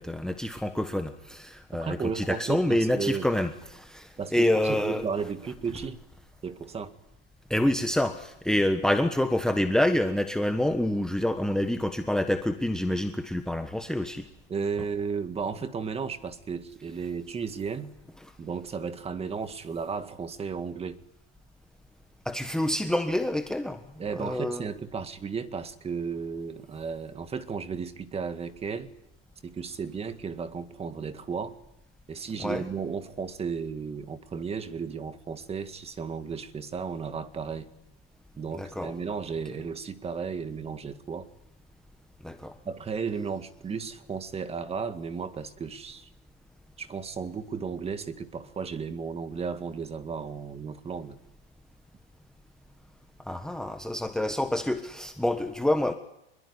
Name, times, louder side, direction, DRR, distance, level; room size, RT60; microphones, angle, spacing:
voice 1, 0.0-5.0 7.5-14.3 22.2-23.8 24.2-24.7 32.4-32.6 38.5-38.9 42.2-42.5 53.3-55.9, left 1 dB, ahead, 1.4 m, -27 dB
voice 2, 1.7-3.3 4.2-6.0 6.4-6.9 14.5-17.9 18.4-21.0 24.0-28.9 29.4-31.6 32.1-37.7 38.4-41.3 42.7-46.1 46.8-51.2, right 5 dB, 20° right, 2.0 m, -34 dB
25.5 x 22.0 x 9.9 m
supercardioid pair, 130°, 32 cm